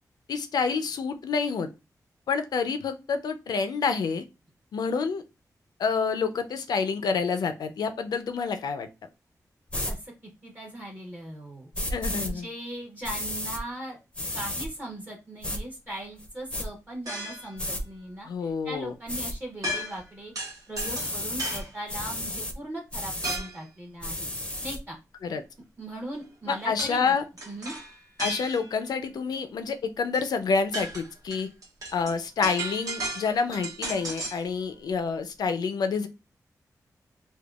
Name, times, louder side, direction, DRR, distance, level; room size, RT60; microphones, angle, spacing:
voice 1, 0.3-1.7 2.3-4.2 4.7-5.2 5.8-8.9 11.9-12.5 18.3-18.9 25.2-25.4 26.5-27.2 28.2-31.5 31.9-36.1, left 5 dB, 90° left, 9 dB, 0.4 m, -28 dB
sound 1, 9.7-9.9 11.7-12.3 13.0-13.6 14.1-14.7 15.4-15.6 16.2-16.7 17.6-17.8 19.1-19.3 20.7-21.6 21.9-22.5 22.9-23.4 24.0-24.8, left 1 dB, 15° left, 0.5 m, -32 dB
voice 2, 9.9-11.7 12.1-14.0 14.3-24.3 24.6-25.0 25.8-27.2 27.5-27.7, right 1 dB, 25° right, -1 dB, 0.7 m, -39 dB
sound 2, 17.1-17.6 19.6-20.1 20.3-21.7 23.2-23.6 26.8-27.0 27.4-28.8 30.1-30.2 30.5-34.4, right 1 dB, 60° right, 0.8 m, -34 dB
3.4 x 2.2 x 2.3 m, 0.27 s
wide cardioid pair, 115°, 7 cm